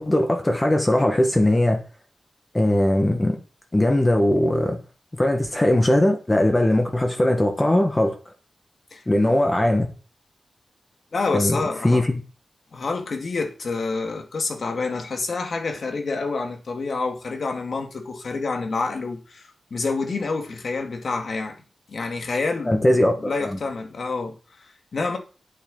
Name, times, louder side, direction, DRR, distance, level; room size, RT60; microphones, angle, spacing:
voice 1, 0.0-1.8 2.5-3.4 3.7-4.8 5.1-8.2 9.1-9.9 11.3-11.6 11.8-12.2 22.6-23.6, left 1 dB, 15° left, 1.6 m, -20 dB
voice 2, 8.9-9.4 11.1-12.1 12.7-21.6 21.9-22.9 23.2-25.2, left 3 dB, 55° left, 2.3 m, -28 dB
10.5 x 8.4 x 5.5 m
wide cardioid pair, 155°, 0 cm